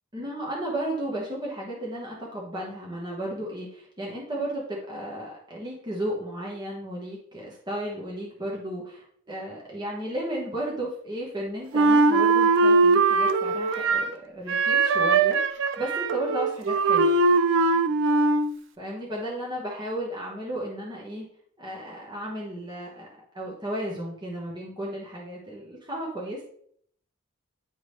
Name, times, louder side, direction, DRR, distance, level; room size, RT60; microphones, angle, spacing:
voice 1, 0.1-17.1 18.8-21.3 21.6-23.1 23.3-26.4, right 1 dB, 20° right, -4 dB, 1.2 m, -34 dB
Wind instrument woodwind instrument, 11.7-14.2 14.5-18.6, right 3 dB, 65° right, 0.5 m, -21 dB
9.7 x 3.6 x 3.2 m, 0.64 s
head